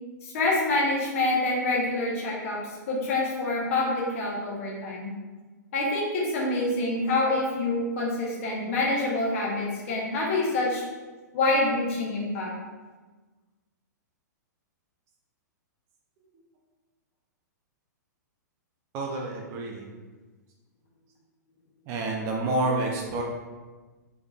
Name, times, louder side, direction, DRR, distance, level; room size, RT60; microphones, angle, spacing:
voice 1, 0.2-2.6 2.9-5.1 5.7-10.8 11.3-12.5, left 2 dB, 45° left, -3 dB, 1.0 m, -26 dB
voice 2, 18.9-19.9 21.9-23.2, right 2 dB, 30° right, 0 dB, 0.5 m, -28 dB
3.6 x 3.5 x 2.4 m, 1.3 s
figure-of-eight pair, 110°, 10 cm